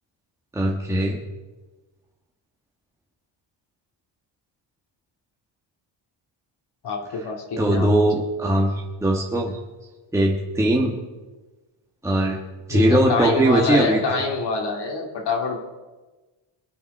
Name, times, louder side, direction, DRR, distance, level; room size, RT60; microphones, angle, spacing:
voice 1, 0.5-1.2 7.6-9.6 10.1-11.0 12.0-12.4 12.7-14.2, right 1 dB, 5° right, -2 dB, 1.4 m, -20 dB
voice 2, 6.8-8.0 12.7-15.6, left 3 dB, 55° left, 1 dB, 2.2 m, -26 dB
22.5 x 9.3 x 5.3 m, 1.2 s
cardioid pair, 135°, 49 cm